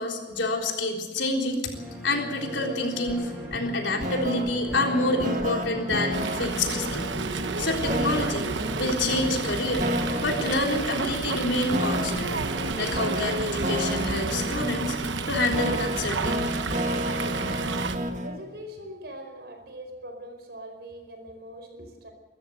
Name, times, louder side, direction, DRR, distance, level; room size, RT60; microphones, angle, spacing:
voice 1, 0.0-1.7 2.0-7.1 7.6-8.5 8.8-9.9 10.2-12.3 12.8-15.0 15.3-16.6, left 2 dB, 80° left, 1 dB, 3.9 m, -28 dB
sound 1, 1.7-15.8, equal, 10° right, 7.6 m, -40 dB
sound 2, 3.1-18.4, equal, 40° right, 1.7 m, -31 dB
Fowl, 6.1-18.0, right 4 dB, 85° right, 1.2 m, -31 dB
voice 2, 18.2-22.1, equal, 60° right, 5 dB, 4.9 m, -42 dB
24.0 x 14.0 x 8.0 m, 1.2 s
head